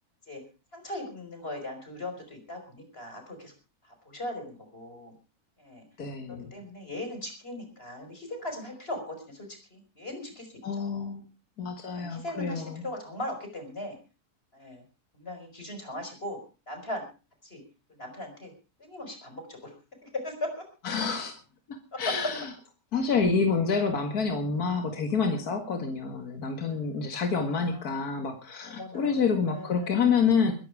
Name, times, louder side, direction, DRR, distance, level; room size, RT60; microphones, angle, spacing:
voice 1, 0.7-3.5 3.8-5.1 5.6-5.8 6.3-11.1 11.8-13.9 14.5-14.8 15.1-16.4 16.7-17.0 17.4-17.6 17.9-18.5 18.8-19.7 20.0-20.6 21.9-22.0 27.6-28.0 28.6-30.1, left 1 dB, 40° left, 5 dB, 5.7 m, -39 dB
voice 2, 6.0-6.5 10.6-11.2 11.6-12.8 20.8-21.4 21.7-22.5 22.9-30.5, left 5 dB, 80° left, 5 dB, 2.3 m, -28 dB
22.5 x 10.5 x 4.9 m, 0.34 s
omnidirectional pair, 1.6 m